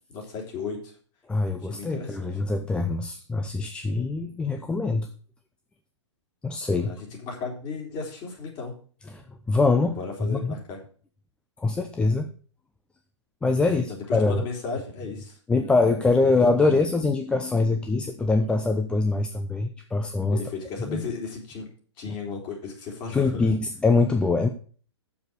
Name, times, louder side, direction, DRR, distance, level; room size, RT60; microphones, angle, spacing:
voice 1, 0.1-0.9 1.6-2.3 6.8-8.8 10.0-10.8 13.9-15.4 16.2-16.7 20.3-21.7 22.0-23.5, left 4 dB, 30° left, 0 dB, 3.5 m, -35 dB
voice 2, 1.3-5.1 6.4-6.9 9.1-10.5 11.6-12.3 13.4-13.9 14.1-14.4 15.5-20.4 20.9-21.0 22.1-22.2 23.1-24.5, left 3 dB, 5° left, 6 dB, 0.5 m, -23 dB
7.9 x 7.0 x 6.4 m, 0.43 s
figure-of-eight pair, 120°, 15 cm